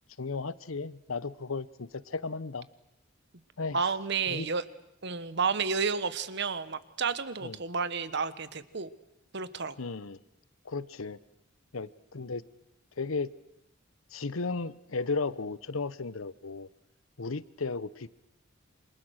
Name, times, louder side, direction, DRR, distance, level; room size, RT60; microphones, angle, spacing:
voice 1, 0.2-2.7 3.6-3.8 4.3-4.5 7.4-7.6 9.8-10.2 10.6-11.2 11.7-12.4 13.0-13.3 14.1-16.7 17.2-18.1, left 4 dB, 90° left, 18 dB, 0.9 m, -34 dB
voice 2, 3.7-4.6 5.0-8.9 9.3-9.8, right 5 dB, 60° right, 14 dB, 1.3 m, -31 dB
28.0 x 26.0 x 6.5 m, 0.87 s
head